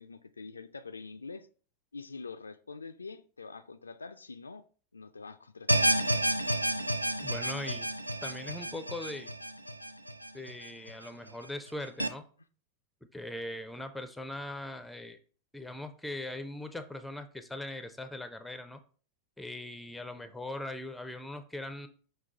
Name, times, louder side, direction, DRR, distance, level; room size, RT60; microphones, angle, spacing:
voice 1, 0.0-1.5 1.9-4.6 4.9-6.1, left 4 dB, 75° left, 0.3 m, -45 dB
sound 1, 5.7-10.9 11.3-11.4 12.0-12.1, right 1 dB, 90° right, 0.3 m, -30 dB
voice 2, 7.2-7.9 8.2-9.3 10.3-12.2 13.1-15.2 15.5-18.8 19.4-21.9, left 1 dB, 5° left, 0.5 m, -40 dB
5.9 x 2.3 x 3.8 m
figure-of-eight pair, 90°, 0 cm